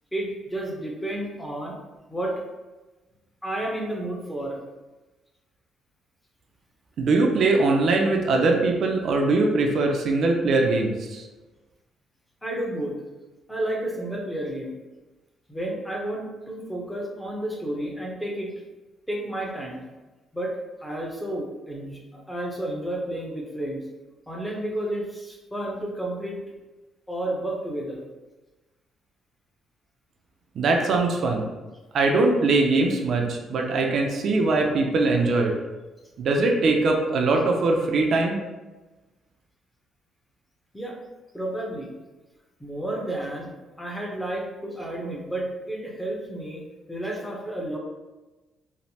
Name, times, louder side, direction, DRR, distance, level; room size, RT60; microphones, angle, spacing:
voice 1, 0.1-1.8 2.1-2.4 3.4-4.6 12.4-13.0 13.5-14.7 15.5-18.5 19.1-19.8 20.3-20.5 20.8-23.8 24.3-26.4 27.1-28.0 40.7-41.0 41.3-41.9 42.6-43.5 43.8-46.6 46.9-47.8, right 1 dB, 5° left, -2 dB, 0.7 m, -31 dB
voice 2, 7.0-11.2 30.6-31.5 31.9-35.5 36.2-38.4, right 3 dB, 60° right, 2 dB, 0.4 m, -21 dB
3.1 x 2.0 x 2.8 m, 1.2 s
cardioid pair, 85°, 0 cm